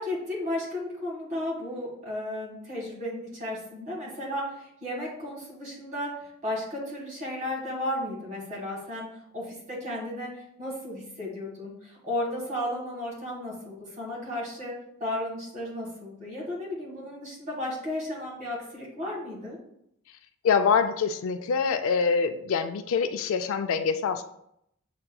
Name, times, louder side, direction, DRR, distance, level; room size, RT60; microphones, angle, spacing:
voice 1, 0.0-9.1 9.3-19.6, left 1 dB, 35° right, -4 dB, 1.6 m, -34 dB
voice 2, 20.4-24.2, left 5 dB, 70° left, 9 dB, 0.3 m, -25 dB
7.6 x 2.8 x 2.2 m, 0.76 s
head